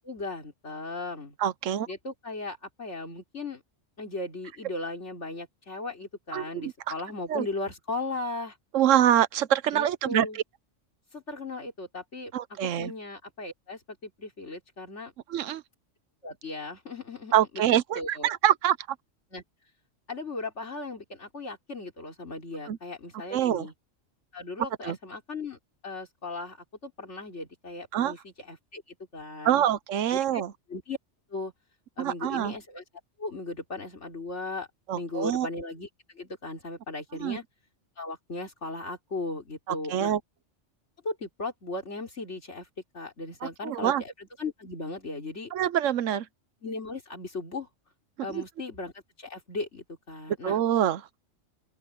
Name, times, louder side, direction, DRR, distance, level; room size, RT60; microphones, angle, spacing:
voice 1, 0.0-1.4 1.9-3.6 4.0-8.6 9.7-10.4 11.1-15.1 16.2-18.3 19.3-19.4 20.1-23.7 24.3-29.6 30.1-30.4 30.7-31.0 31.3-31.5 32.0-32.8 33.2-34.7 35.0-35.9 36.1-37.4 38.0-40.1 41.0-42.7 42.9-45.5 46.6-47.7 48.2-48.9 49.2-50.6, left 2 dB, 65° left, 3.9 m, -37 dB
voice 2, 1.4-1.9 6.3-6.7 7.3-7.5 8.7-10.4 12.3-12.9 15.3-15.6 17.3-18.8 22.7-22.8 23.3-23.7 24.8-25.0 27.9-28.1 29.4-30.5 32.0-32.5 34.9-35.5 37.1-37.4 39.7-40.2 43.4-44.0 45.5-46.3 48.3-48.4 50.4-51.0, right 11 dB, 85° right, 1.1 m, -25 dB
open air
omnidirectional pair, 1.3 m